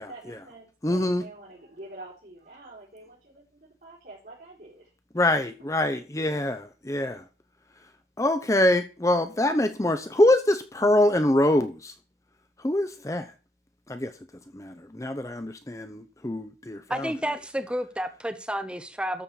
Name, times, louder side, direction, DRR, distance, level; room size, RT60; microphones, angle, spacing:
voice 1, 0.0-4.9, right 2 dB, 55° right, -8 dB, 4.5 m, -46 dB
voice 2, 0.8-1.2 5.1-7.2 8.2-11.9 12.6-13.3 13.9-14.1 14.5-17.1, left 1 dB, 20° left, 9 dB, 0.7 m, -24 dB
voice 3, 16.9-19.2, equal, 5° right, 8 dB, 1.0 m, -31 dB
13.0 x 4.5 x 6.9 m, 0.35 s
head